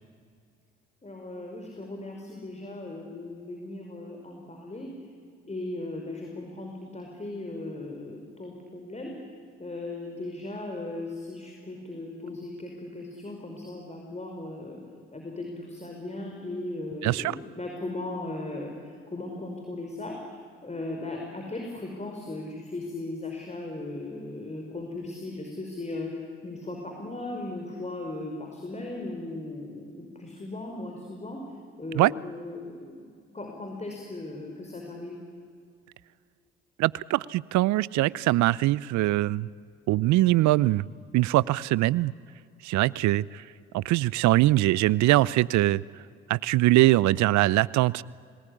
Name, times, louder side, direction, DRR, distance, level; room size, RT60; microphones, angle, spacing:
voice 1, 1.0-4.9 5.5-9.1 9.6-14.8 15.1-20.2 20.6-31.4 31.8-33.0 33.3-35.2, left 2 dB, 20° left, 1 dB, 5.4 m, -37 dB
voice 2, 17.0-17.4 31.9-32.1 36.8-39.5 39.9-40.8 41.1-42.1 42.6-43.4 43.7-45.8 46.3-48.0, right 17 dB, 70° right, 22 dB, 0.6 m, -22 dB
29.0 x 20.0 x 10.0 m, 2.3 s
hypercardioid pair, 50°, 30 cm